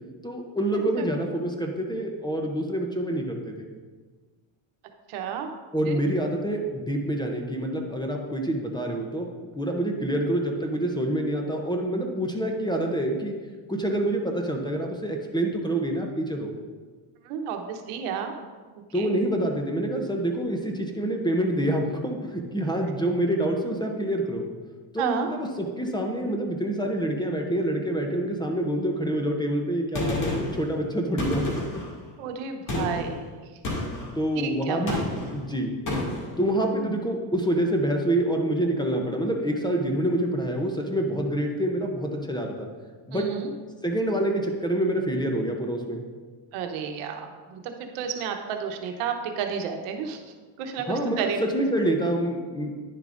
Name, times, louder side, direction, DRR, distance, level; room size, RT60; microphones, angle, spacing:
voice 1, 0.2-3.7 5.7-13.4 13.7-16.5 18.9-24.5 24.9-31.6 34.2-35.0 35.3-35.8 36.4-42.7 43.1-43.4 43.8-46.0 50.9-52.8, right 1 dB, 10° left, 2 dB, 0.6 m, -27 dB
voice 2, 5.1-5.5 5.9-6.0 17.2-18.3 18.9-19.1 25.0-25.3 32.2-33.4 34.3-35.0 43.1-43.5 46.5-50.2 50.6-51.4, right 7 dB, 80° right, 5 dB, 1.0 m, -31 dB
Gunshot gunfire, 29.9-30.6 31.2-31.9 32.7-33.1 33.6-34.1 34.9-35.4 35.9-36.3, left 1 dB, 40° left, 2.3 m, -29 dB
10.0 x 6.8 x 2.5 m, 1.4 s
cardioid pair, 125°, 50 cm